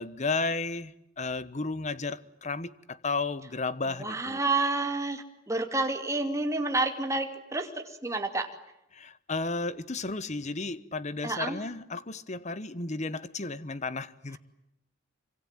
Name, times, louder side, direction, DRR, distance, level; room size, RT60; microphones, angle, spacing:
voice 1, 0.0-4.4 8.9-14.4, left 3 dB, 40° left, 1.1 m, -33 dB
voice 2, 4.0-7.7 8.0-8.5 11.2-11.6, right 2 dB, 15° right, 2.6 m, -29 dB
26.0 x 25.5 x 9.0 m
head